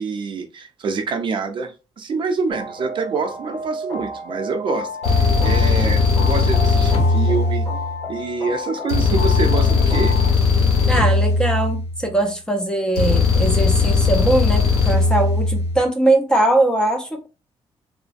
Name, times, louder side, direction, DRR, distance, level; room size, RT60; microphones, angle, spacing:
voice 1, 0.0-7.6 8.1-10.1, right 5 dB, 50° right, 0.5 m, -26 dB
sound 1, 2.5-10.3, left 1 dB, 35° left, 1.4 m, -31 dB
sound 2, 5.0-8.1 8.9-12.2 13.0-15.8, left 4 dB, 80° left, 0.9 m, -18 dB
voice 2, 10.9-17.3, right 2 dB, 5° left, 0.5 m, -20 dB
3.1 x 2.1 x 2.5 m
cardioid pair, 145°, 11 cm